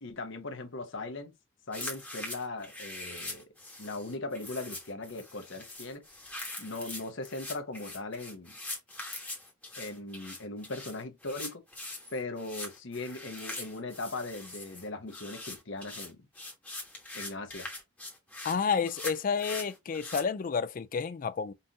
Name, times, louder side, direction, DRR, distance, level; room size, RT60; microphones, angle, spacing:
voice 1, 0.0-1.3 1.7-3.4 3.8-6.0 6.6-8.5 9.8-11.6 12.1-16.3 17.1-17.7, left 2 dB, 60° left, 0.9 m, -39 dB
sound 1, 1.7-20.2, left 2 dB, 5° left, 1.1 m, -42 dB
voice 2, 18.4-21.5, left 6 dB, 40° left, 0.3 m, -30 dB
5.5 x 2.6 x 2.8 m
head